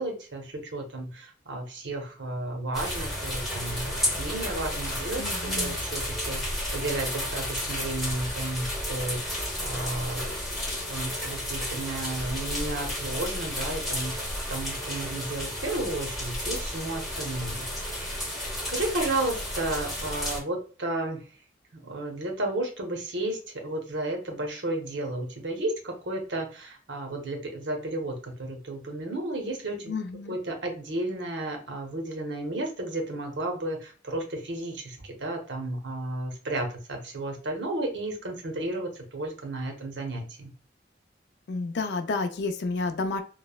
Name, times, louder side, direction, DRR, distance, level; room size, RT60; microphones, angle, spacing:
voice 1, 0.0-10.4 10.7-14.2 14.5-21.2 21.7-29.9 30.3-40.5, right 2 dB, 85° right, 2 dB, 0.7 m, -33 dB
sound 1, 2.7-20.4, left 1 dB, ahead, 1.0 m, -32 dB
voice 2, 5.2-5.8 29.9-30.4 41.5-43.2, left 3 dB, 70° left, 8 dB, 0.4 m, -30 dB
3.1 x 2.0 x 2.3 m, 0.38 s
head